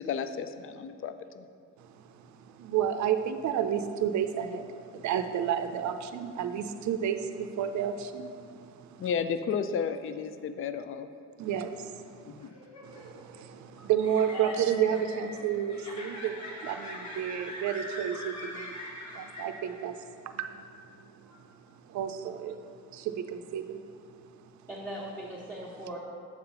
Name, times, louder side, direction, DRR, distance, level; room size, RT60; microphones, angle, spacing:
voice 1, 0.0-1.4 9.0-11.1 12.2-12.5, left 6 dB, 45° left, 11 dB, 0.4 m, -33 dB
voice 2, 1.8-9.1 11.4-12.5 12.8-18.8 19.1-21.2 21.9-22.6 22.9-23.8, right 9 dB, 70° right, 9 dB, 0.5 m, -31 dB
sound 1, 12.4-20.0, left 1 dB, 65° left, 1.4 m, -43 dB
voice 3, 14.3-14.8 21.3-21.4 24.7-26.0, equal, 10° left, -9 dB, 1.3 m, -40 dB
7.3 x 3.9 x 5.7 m, 2.3 s
cardioid pair, 90°, 30 cm